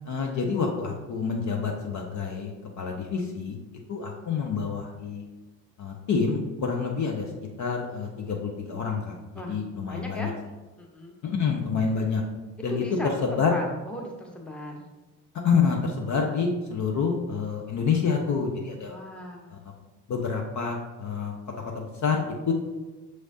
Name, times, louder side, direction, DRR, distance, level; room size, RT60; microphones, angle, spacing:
voice 1, 0.0-2.5 2.8-3.6 3.9-5.2 5.8-7.3 7.6-10.3 11.2-12.2 12.6-13.5 15.4-18.9 19.5-19.6 20.1-21.3 21.7-22.5, left 5 dB, 40° left, 1 dB, 0.7 m, -27 dB
voice 2, 9.9-10.3 10.8-11.1 12.7-14.9 18.9-19.5, equal, ahead, 0 dB, 0.8 m, -37 dB
6.3 x 3.2 x 2.7 m, 1.2 s
figure-of-eight pair, 55°, 49 cm